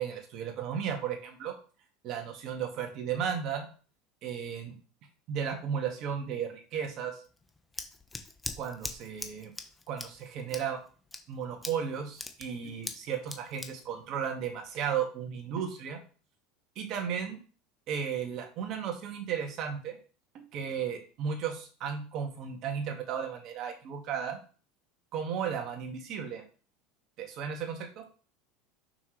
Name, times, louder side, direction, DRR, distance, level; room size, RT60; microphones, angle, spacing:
voice 1, 0.0-1.5 2.0-3.7 4.2-4.7 5.3-7.2 8.6-9.5 9.9-10.8 11.3-16.0 16.8-17.4 17.9-20.0 20.3-24.4 25.1-26.4 27.2-28.0, right 7 dB, 55° right, 3 dB, 1.9 m, -34 dB
Scissors, 7.2-15.0, left 3 dB, 15° left, 1.1 m, -43 dB
6.0 x 5.8 x 3.3 m, 0.38 s
supercardioid pair, 95°, 0 cm